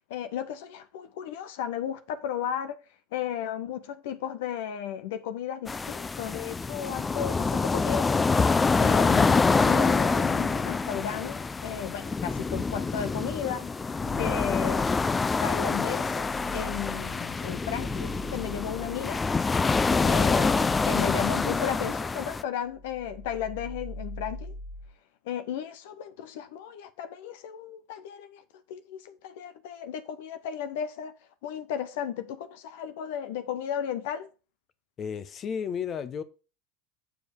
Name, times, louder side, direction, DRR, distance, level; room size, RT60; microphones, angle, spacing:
voice 1, 0.1-2.8 3.1-8.2 8.8-13.7 14.2-14.9 15.4-19.2 20.0-24.6 25.2-28.4 28.7-31.1 31.4-34.3, left 9 dB, 70° left, 0.7 m, -34 dB
sound 1, 5.7-22.4, left 4 dB, 20° left, 0.4 m, -26 dB
voice 2, 14.0-14.3 19.8-20.3 35.0-36.2, left 7 dB, 40° left, 0.9 m, -34 dB
sound 2, 15.8-22.3 22.6-24.9, equal, 15° right, 1.6 m, -42 dB
7.2 x 5.0 x 6.5 m
hypercardioid pair, 85°, 0 cm